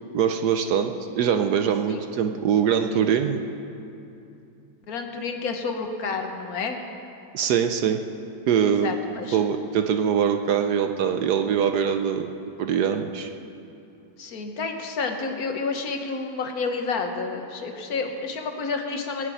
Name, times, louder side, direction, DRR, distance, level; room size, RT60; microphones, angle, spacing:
voice 1, 0.1-3.4 7.3-8.0 8.5-9.0 9.3-12.3 12.6-13.3, right 8 dB, 65° right, 6 dB, 1.1 m, -23 dB
voice 2, 4.9-6.8 8.7-9.4 14.2-19.3, left 4 dB, 55° left, 4 dB, 1.5 m, -30 dB
19.0 x 6.7 x 9.2 m, 2.7 s
omnidirectional pair, 2.1 m